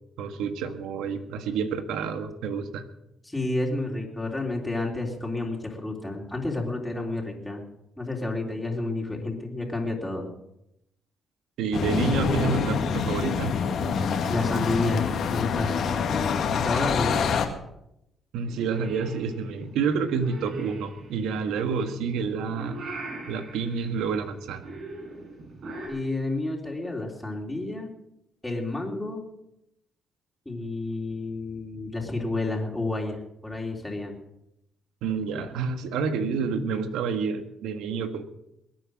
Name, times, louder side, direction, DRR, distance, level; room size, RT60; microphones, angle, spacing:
voice 1, 0.2-2.8 11.6-13.7 18.3-22.8 23.3-24.7 35.0-38.2, right 5 dB, 90° right, 9 dB, 1.5 m, -29 dB
voice 2, 3.2-7.6 8.0-10.3 14.3-17.4 25.9-27.9 28.4-29.3 30.4-34.2, left 2 dB, 10° left, -1 dB, 3.5 m, -30 dB
sound 1, 11.7-17.5, left 6 dB, 65° left, 2.0 m, -26 dB
Purr / Meow, 18.4-25.9, right 2 dB, 65° right, 6.6 m, -41 dB
21.5 x 9.1 x 6.4 m, 0.82 s
cardioid pair, 90°, 0 cm